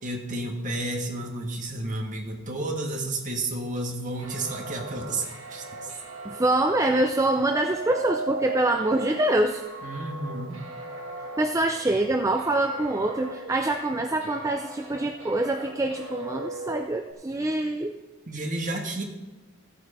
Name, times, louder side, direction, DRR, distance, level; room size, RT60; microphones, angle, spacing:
voice 1, 0.0-5.9 9.8-10.6 18.3-19.0, right 2 dB, 35° right, 2 dB, 1.6 m, -31 dB
sound 1, 4.2-17.1, right 2 dB, 70° right, 1.8 m, -38 dB
voice 2, 6.2-9.6 11.4-17.9, right 2 dB, 15° right, 5 dB, 0.4 m, -25 dB
15.0 x 8.5 x 4.3 m, 1.1 s
head